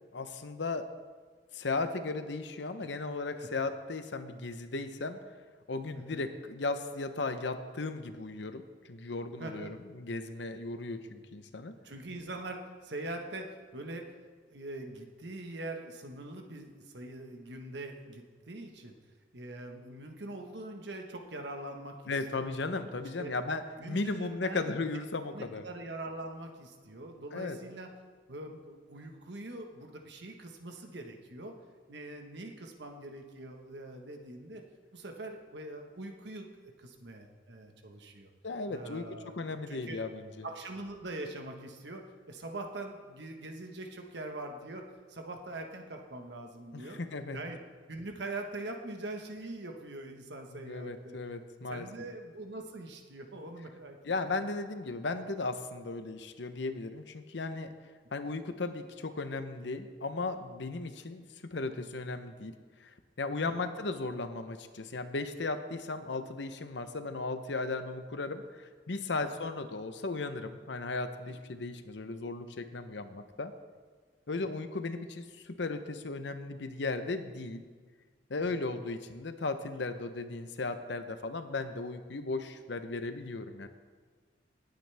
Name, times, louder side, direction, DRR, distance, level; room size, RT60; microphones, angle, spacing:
voice 1, 0.1-0.8 1.5-5.2 5.7-8.6 8.9-11.7 22.1-23.6 23.9-25.6 27.3-27.6 38.4-40.5 46.7-47.4 50.6-51.9 54.0-57.7 58.1-62.5 62.8-73.5 74.3-77.6 78.3-83.7, left 3 dB, 70° left, 9 dB, 0.8 m, -36 dB
voice 2, 9.4-9.7 11.8-14.1 14.5-18.9 19.3-22.1 23.2-23.3 23.8-24.7 25.3-27.9 28.3-31.6 31.9-34.6 34.9-36.5 36.8-38.3 38.7-40.0 40.4-44.8 45.1-47.0 47.3-47.6 47.9-51.2 51.7-54.0 54.3-54.4 63.4-63.7 69.3-69.4 71.3-71.4 74.3-74.6 78.4-78.7, right 2 dB, 65° right, 3 dB, 1.3 m, -43 dB
18.0 x 9.1 x 3.5 m, 1.5 s
head